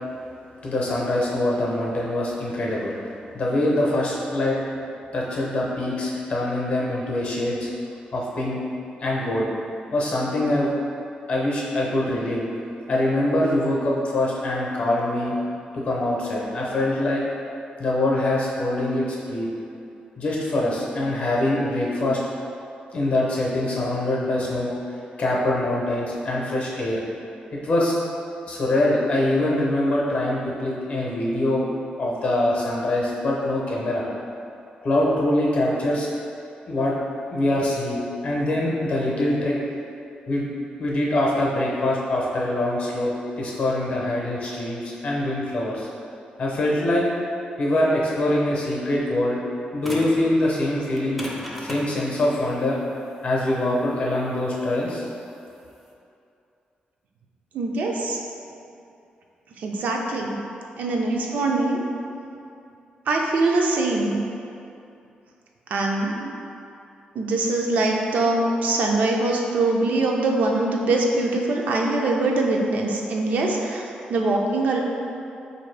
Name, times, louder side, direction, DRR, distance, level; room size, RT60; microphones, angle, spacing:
voice 1, 0.6-2.9 3.3-4.6 5.1-7.7 8.1-8.6 9.0-9.5 9.9-10.7 11.3-12.4 12.9-15.4 15.7-17.2 17.8-19.5 20.2-22.2 22.9-24.7 25.2-27.0 27.5-27.9 28.5-31.7 32.0-34.0 34.8-36.1 36.7-36.9 37.3-38.0 38.2-39.6 40.3-40.5 40.8-45.9 46.4-47.1 47.6-49.4 49.7-51.3 51.6-52.8 53.2-55.1, left 1 dB, 45° left, -4 dB, 0.7 m, -24 dB
sound 1, 49.8-50.2 50.9-55.9, equal, ahead, 0.4 m, -37 dB
voice 2, 57.5-58.2 59.6-60.3 60.8-61.8 63.1-64.2 65.7-66.4 67.1-73.8 74.1-74.8, right 2 dB, 60° right, 0 dB, 0.4 m, -23 dB
4.4 x 2.6 x 3.2 m, 2.7 s
wide cardioid pair, 170°, 3 cm